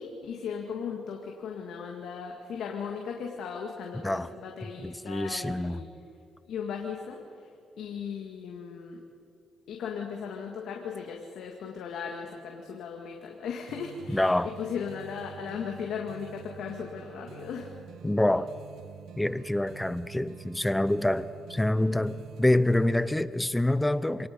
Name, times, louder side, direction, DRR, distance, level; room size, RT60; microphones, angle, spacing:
voice 1, 0.0-5.9 6.5-7.5 7.8-9.0 9.7-17.7, left 6 dB, 75° left, 2.1 m, -37 dB
voice 2, 4.8-5.8 14.1-14.5 18.0-18.5 19.2-24.3, left 1 dB, 10° left, 0.6 m, -26 dB
sound 1, 13.7-23.3, right 9 dB, 75° right, 0.9 m, -48 dB
27.0 x 19.0 x 5.4 m
cardioid pair, 90°, 0 cm